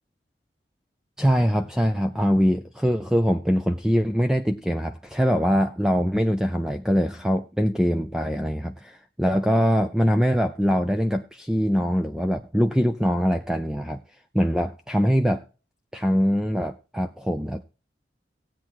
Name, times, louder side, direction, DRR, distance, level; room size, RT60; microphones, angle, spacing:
voice 1, 1.2-14.0 14.3-15.4 15.9-17.6, equal, 5° right, 7 dB, 0.5 m, -23 dB
15.5 x 8.9 x 4.7 m, 0.36 s
head